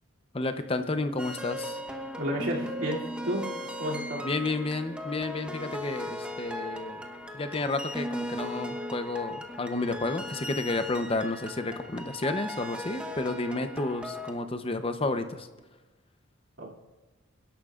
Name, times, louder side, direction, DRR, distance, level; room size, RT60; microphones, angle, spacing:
voice 1, 0.3-1.8 4.2-7.0 7.3-15.5, left 2 dB, 30° left, 8 dB, 0.8 m, -31 dB
sound 1, 1.2-14.3, left 1 dB, 5° right, 1.0 m, -37 dB
voice 2, 2.2-3.5 3.8-4.3 16.6-16.8, equal, 70° right, -3 dB, 2.8 m, -32 dB
28.0 x 11.5 x 2.5 m, 1.2 s
head